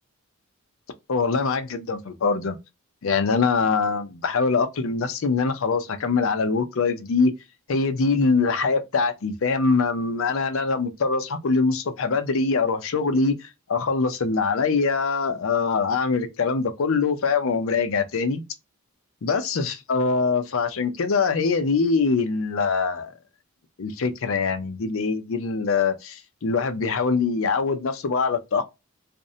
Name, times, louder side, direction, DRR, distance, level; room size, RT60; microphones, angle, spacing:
voice 1, 1.1-2.6 3.0-7.3 7.7-18.4 19.2-23.1 23.8-28.6, left 4 dB, 65° left, 0.5 m, -23 dB
2.5 x 2.0 x 2.5 m
head